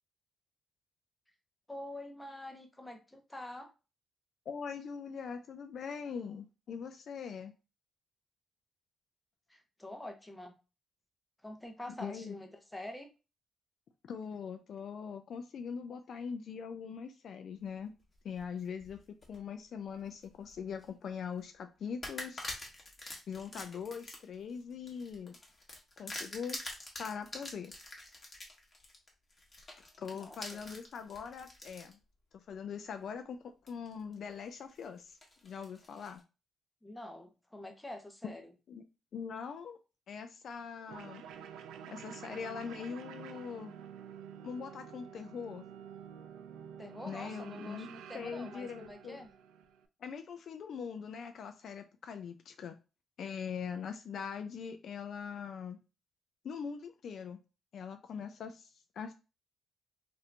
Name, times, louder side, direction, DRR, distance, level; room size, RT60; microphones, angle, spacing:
voice 1, 1.7-3.7 9.5-10.6 11.4-13.1 30.1-30.4 36.8-38.5 46.8-49.3, left 1 dB, 10° left, 5 dB, 0.8 m, -46 dB
voice 2, 4.5-7.5 12.0-12.4 14.1-17.9 18.2-22.5 23.3-25.4 26.0-26.6 27.0-27.7 30.0-32.0 32.3-35.2 35.4-36.2 38.2-38.3 38.7-38.8 39.1-39.8 40.1-41.2 41.9-43.7 44.4-45.7 47.1-47.9 48.1-49.2 50.0-52.8 53.2-55.8 56.4-57.4 57.7-59.1, left 6 dB, 60° left, 8 dB, 0.3 m, -42 dB
sound 1, 18.1-19.4 19.9-20.9 21.3-21.5 22.0-31.9 32.5-32.6 33.7-34.1 34.5-36.2, left 1 dB, 30° left, 1.1 m, -46 dB
sound 2, 40.9-49.9, right 8 dB, 90° right, 0.3 m, -49 dB
2.8 x 2.6 x 3.2 m, 0.30 s
cardioid pair, 90°, 0 cm